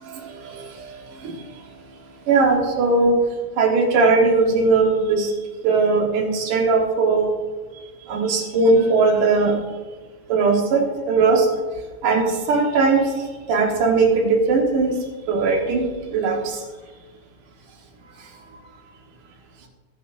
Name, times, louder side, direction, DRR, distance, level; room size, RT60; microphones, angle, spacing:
voice 1, 2.3-3.2 3.6-5.3 5.6-7.3 8.1-9.6 10.3-11.5 12.0-13.0 13.5-15.0 15.3-15.8 16.1-16.6, right 3 dB, 85° right, 1 dB, 3.1 m, -19 dB
21.0 x 8.8 x 2.7 m, 1.4 s
omnidirectional pair, 3.6 m